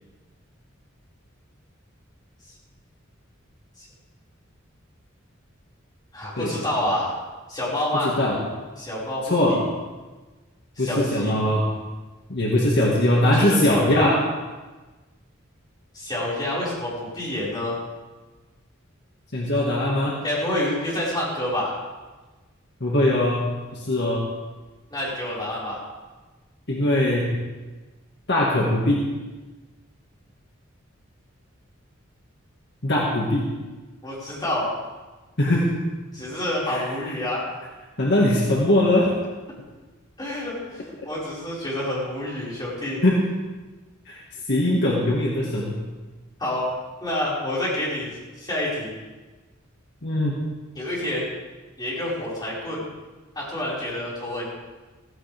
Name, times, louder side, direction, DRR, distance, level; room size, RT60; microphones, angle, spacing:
voice 1, 6.1-7.1 7.5-8.1 8.8-9.7 10.8-11.4 13.3-14.2 15.9-17.8 20.2-21.7 24.9-25.8 34.0-34.7 36.1-37.4 40.2-43.0 46.4-46.6 47.0-48.9 50.8-51.3 51.8-52.8 53.4-54.5, left 1 dB, 20° left, -7 dB, 5.4 m, -28 dB
voice 2, 8.0-8.4 9.2-9.6 10.8-11.7 12.3-14.2 19.3-20.2 22.8-23.5 23.8-24.2 26.7-27.4 28.3-29.0 32.8-33.5 35.4-35.7 36.7-36.8 38.0-39.1 43.0-43.4 44.1-44.2 44.5-45.8 50.0-50.4, left 1 dB, 55° left, -3 dB, 1.9 m, -21 dB
16.0 x 15.5 x 3.6 m, 1.2 s
head